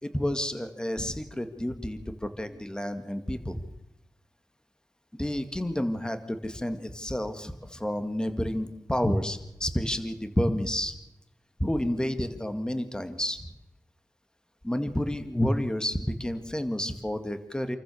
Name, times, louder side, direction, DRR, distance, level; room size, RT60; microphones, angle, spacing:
voice 1, 0.0-3.6 5.2-11.0 11.6-13.5 14.6-17.8, equal, 10° left, 9 dB, 2.1 m, -30 dB
28.0 x 14.5 x 6.7 m, 0.89 s
wide cardioid pair, 70°, 7 cm